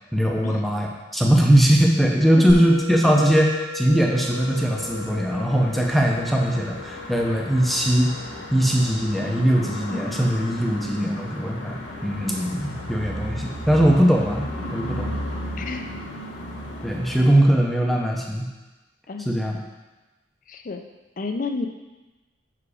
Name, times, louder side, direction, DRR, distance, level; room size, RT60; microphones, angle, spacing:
voice 1, 0.1-8.1 8.5-15.1 16.8-18.5 19.3-19.6, equal, ahead, -1 dB, 0.6 m, -20 dB
Musical instrument, 2.5-13.1, left 3 dB, 80° right, 1.8 m, -39 dB
sound 1, 4.2-17.4, left 1 dB, 80° left, 1.2 m, -34 dB
voice 2, 15.6-15.9 19.1-19.3 20.5-20.8 21.2-21.7, left 3 dB, 45° left, 6 dB, 0.5 m, -31 dB
5.9 x 4.9 x 4.9 m, 1.1 s
head